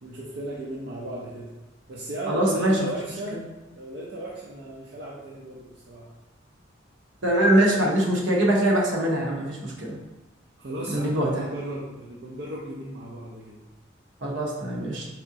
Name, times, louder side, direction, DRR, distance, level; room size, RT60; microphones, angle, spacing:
voice 1, 0.0-1.5 1.9-3.4 3.7-6.1 10.6-13.6, right 1 dB, 60° right, -4 dB, 0.5 m, -35 dB
voice 2, 2.3-2.8 3.3-3.4 7.2-10.0 10.9-11.5 14.2-15.1, right 1 dB, 80° right, -3 dB, 1.0 m, -23 dB
4.2 x 3.5 x 2.8 m, 1.1 s
head